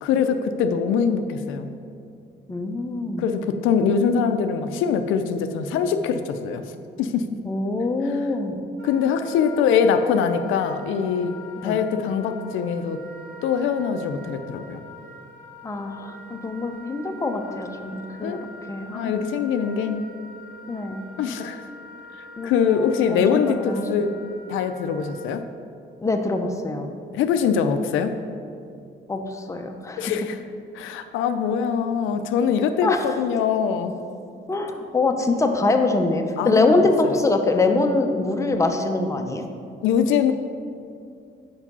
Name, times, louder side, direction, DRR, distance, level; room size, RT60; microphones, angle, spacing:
voice 1, 0.0-1.7 3.2-6.6 7.0-7.4 8.0-8.2 8.8-11.4 11.6-13.0 13.4-14.8 18.2-18.4 18.9-20.1 21.2-21.6 22.4-24.2 24.5-25.4 27.1-28.2 30.0-30.4 30.7-33.9 36.4-37.2 39.8-40.3, left 7 dB, 85° left, 8 dB, 0.4 m, -23 dB
voice 2, 2.5-3.2 7.4-8.5 11.6-11.8 15.6-18.4 18.7-19.2 20.7-21.1 22.4-24.0 26.0-26.9 29.1-30.1 32.8-33.0 34.5-39.4, left 2 dB, 15° left, 4 dB, 0.6 m, -24 dB
Wind instrument woodwind instrument, 8.8-25.4, left 1 dB, 65° right, 1.3 m, -44 dB
4.9 x 4.6 x 5.4 m, 2.4 s
cardioid pair, 90°, 20 cm